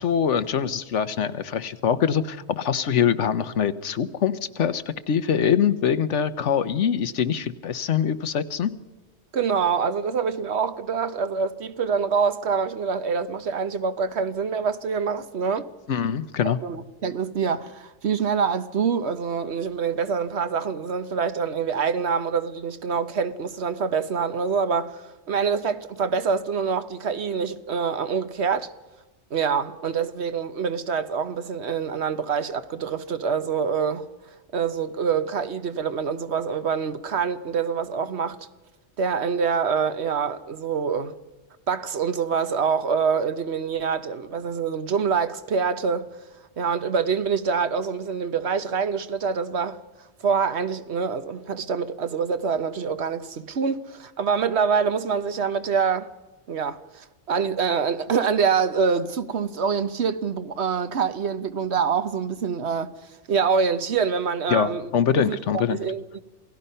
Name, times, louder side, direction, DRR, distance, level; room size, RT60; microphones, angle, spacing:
voice 1, 0.0-8.7 15.9-16.6 64.5-65.8, left 8 dB, 80° left, 1.3 m, -24 dB
voice 2, 9.3-15.7 16.4-28.7 29.3-34.1 34.5-38.4 39.0-41.1 41.7-46.1 46.6-49.8 50.2-56.1 56.5-62.9 63.3-66.2, right 6 dB, 65° right, 1.2 m, -25 dB
28.0 x 17.5 x 5.6 m
omnidirectional pair, 1.2 m